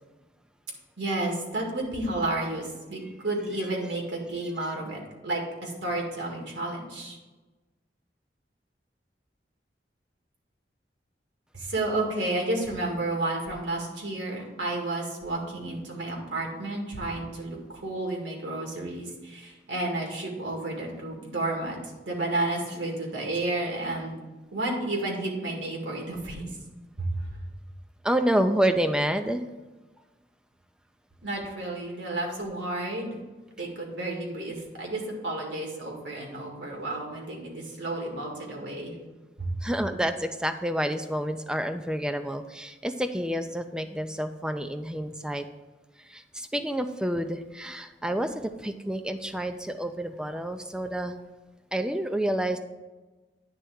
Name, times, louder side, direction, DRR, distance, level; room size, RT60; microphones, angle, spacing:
voice 1, 1.0-7.2 11.5-21.8 22.1-24.1 24.5-26.5 27.0-27.4 31.2-33.1 33.6-39.0 39.4-39.5, right 2 dB, 80° right, 0 dB, 2.0 m, -31 dB
voice 2, 28.0-29.4 39.6-45.4 46.1-51.1 51.7-52.6, right 1 dB, 5° right, 7 dB, 0.4 m, -28 dB
9.6 x 3.4 x 6.3 m, 1.2 s
head